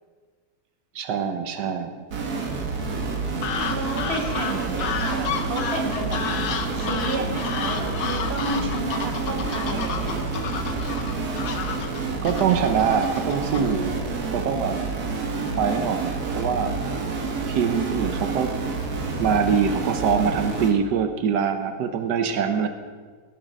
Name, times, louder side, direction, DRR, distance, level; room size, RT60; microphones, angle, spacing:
voice 1, 0.9-2.0 12.2-13.9 14.3-14.8 15.6-16.8 17.5-18.5 19.2-22.7, right 7 dB, 85° right, 7 dB, 1.4 m, -24 dB
sound 1, 2.1-20.7, right 4 dB, 65° right, 1.8 m, -28 dB
sound 2, 3.4-14.1, left 6 dB, 75° left, 1.4 m, -32 dB
voice 2, 3.7-6.2 6.7-10.2, right 2 dB, 40° right, 2 dB, 1.7 m, -32 dB
17.0 x 7.6 x 5.3 m, 1.5 s
omnidirectional pair, 1.8 m